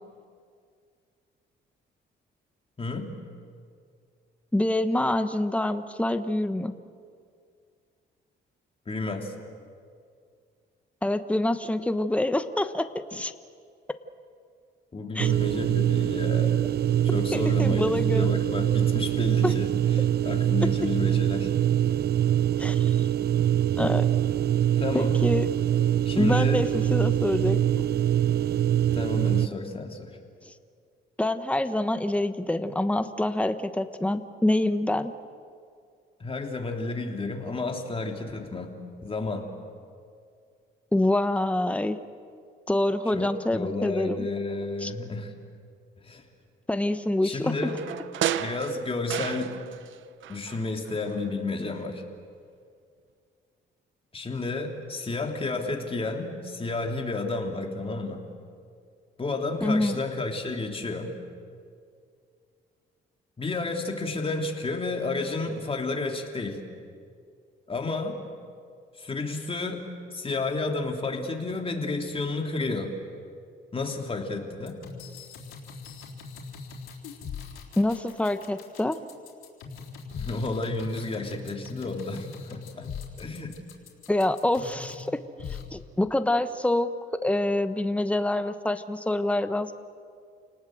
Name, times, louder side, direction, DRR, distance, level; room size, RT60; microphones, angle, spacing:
voice 1, 2.8-3.2 8.9-9.3 14.9-16.6 17.1-21.5 24.8-25.2 26.0-26.7 28.9-30.2 36.2-39.5 43.1-45.3 46.0-46.3 47.2-47.8 48.4-49.6 50.3-52.0 54.1-58.2 59.2-61.2 63.4-66.7 67.7-68.2 69.0-73.0 73.7-74.8 80.1-82.9 83.2-83.6, left 3 dB, 30° left, 2 dB, 3.3 m, -31 dB
voice 2, 4.5-6.7 11.0-13.3 15.1-15.3 17.3-18.3 19.4-19.5 22.6-23.0 23.8-24.0 24.9-25.5 26.2-27.6 30.5-30.6 31.2-35.1 40.9-42.0 42.7-44.3 44.8-44.9 46.7-47.5 59.6-60.0 77.8-79.0 84.1-85.2 85.7-89.7, left 1 dB, 5° left, 10 dB, 1.2 m, -26 dB
sound 1, 15.2-29.5, right 11 dB, 55° right, 0.6 m, -24 dB
sound 2, 47.5-50.0 50.2-51.3 51.6-51.7, right 11 dB, 75° right, 0.9 m, -33 dB
sound 3, 74.7-85.1 85.4-85.6, left 5 dB, 90° left, 3.9 m, -41 dB
29.0 x 19.0 x 7.9 m, 2.2 s
cardioid pair, 90°, 20 cm